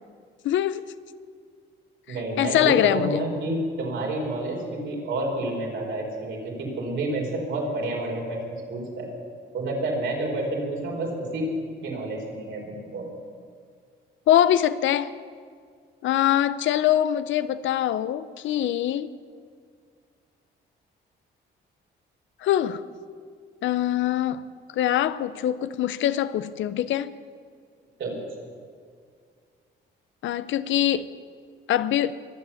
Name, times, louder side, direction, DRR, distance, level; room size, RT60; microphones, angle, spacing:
voice 1, 0.4-0.8 2.4-3.2 14.3-15.1 16.0-19.1 22.4-22.8 23.6-24.4 24.7-27.1 30.2-31.1 31.7-32.1, left 11 dB, 75° left, 0.6 m, -23 dB
voice 2, 2.1-9.1 9.5-11.5 11.8-13.0 28.0-28.1, right 2 dB, 75° right, 4.6 m, -29 dB
23.0 x 8.1 x 7.1 m
cardioid pair, 90°, 20 cm